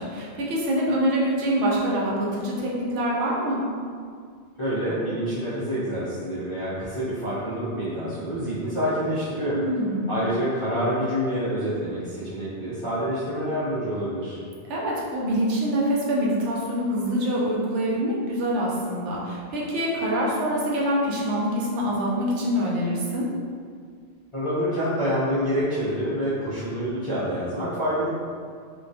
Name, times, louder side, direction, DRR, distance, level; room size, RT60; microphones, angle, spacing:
voice 1, 0.0-3.6 9.5-10.2 14.7-23.3, equal, 80° right, -4 dB, 0.9 m, -25 dB
voice 2, 4.6-9.6 10.1-14.4 24.3-28.1, equal, 40° left, -12 dB, 0.4 m, -27 dB
2.2 x 2.2 x 2.6 m, 2.1 s
omnidirectional pair, 1.2 m